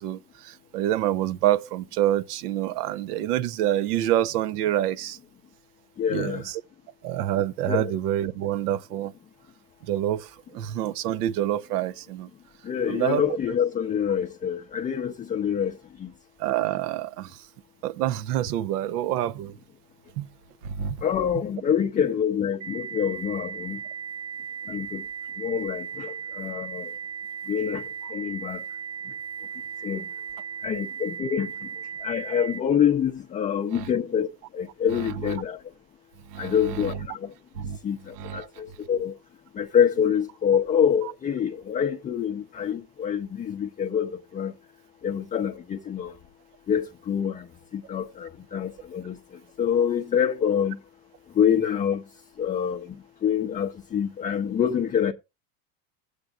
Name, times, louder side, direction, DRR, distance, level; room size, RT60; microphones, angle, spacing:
voice 1, 0.0-5.2 6.1-6.6 7.0-9.1 9.8-12.3 12.9-13.4 16.4-17.5 17.8-19.6 20.2-20.3 20.6-21.0 33.7-33.9 34.9-35.4 36.3-36.9 37.6-37.8 38.2-38.5, right 12 dB, 85° right, 0.7 m, -27 dB
voice 2, 6.0-6.5 7.7-7.9 12.6-16.1 21.0-23.8 24.7-25.0 25.4-26.9 27.5-28.6 29.8-30.0 30.6-31.5 32.0-34.3 34.5-35.6 36.4-37.3 37.8-39.1 39.5-44.5 45.0-46.1 46.7-47.5 47.7-49.2 49.6-50.8 51.4-52.0 52.4-52.9 53.2-55.1, left 8 dB, 20° left, 0.5 m, -26 dB
sound 1, 22.6-32.6, right 7 dB, 35° right, 1.1 m, -36 dB
15.0 x 8.1 x 2.4 m
supercardioid pair, 125°, 45 cm